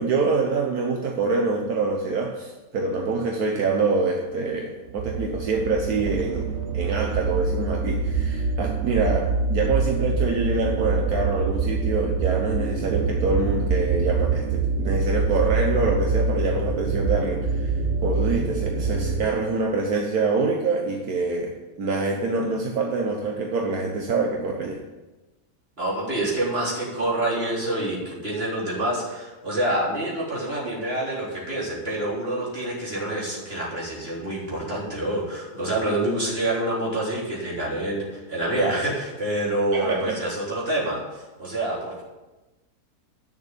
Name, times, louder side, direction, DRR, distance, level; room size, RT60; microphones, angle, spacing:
voice 1, 0.0-24.8 39.7-40.1, right 3 dB, 75° right, 1 dB, 1.6 m, -25 dB
sound 1, 4.9-19.3, right 4 dB, 55° right, 0.8 m, -25 dB
voice 2, 25.8-42.0, right 1 dB, 40° right, -6 dB, 3.9 m, -27 dB
9.3 x 6.8 x 8.2 m, 1.1 s
omnidirectional pair, 1.6 m